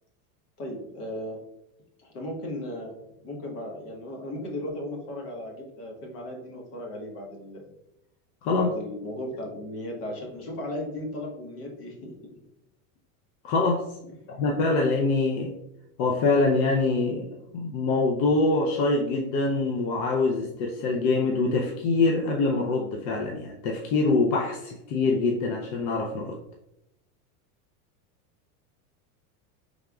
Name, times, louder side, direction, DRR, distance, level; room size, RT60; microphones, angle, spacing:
voice 1, 0.6-1.4 2.0-2.9 3.2-7.7 8.5-12.1 14.1-14.5, left 1 dB, 85° left, 0 dB, 1.4 m, -36 dB
voice 2, 13.4-13.8 14.3-15.5 16.0-26.4, left 3 dB, 65° left, 0 dB, 0.7 m, -24 dB
4.8 x 3.6 x 2.3 m, 0.83 s
supercardioid pair, 140°, 45 cm